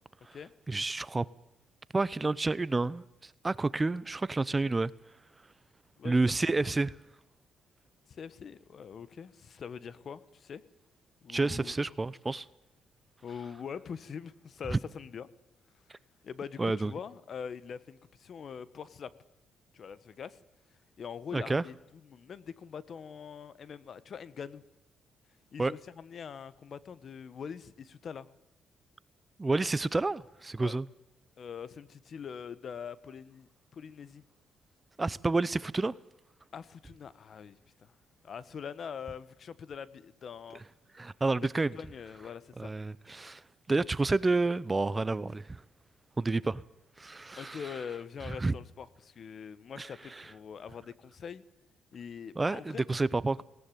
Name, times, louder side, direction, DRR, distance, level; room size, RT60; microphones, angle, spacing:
voice 1, 0.7-1.3 1.9-4.9 6.0-6.9 11.3-12.5 14.7-14.8 16.6-16.9 21.3-21.6 25.6-25.7 29.4-30.8 35.0-35.9 41.0-41.7 42.6-43.4 43.7-45.6 46.2-46.6 47.0-47.6 48.3-48.5 49.8-49.9 50.2-50.3 52.4-53.4, right 3 dB, 20° right, 0.7 m, -29 dB
voice 2, 8.1-10.6 11.2-11.7 13.2-15.3 16.2-19.1 19.7-20.4 21.0-24.6 25.5-28.3 30.6-30.8 31.4-34.2 36.5-37.9 38.2-40.6 41.4-42.7 47.4-51.4 51.9-52.8, left 7 dB, 55° left, 1.3 m, -43 dB
18.5 x 18.5 x 9.3 m
cardioid pair, 90°, 0 cm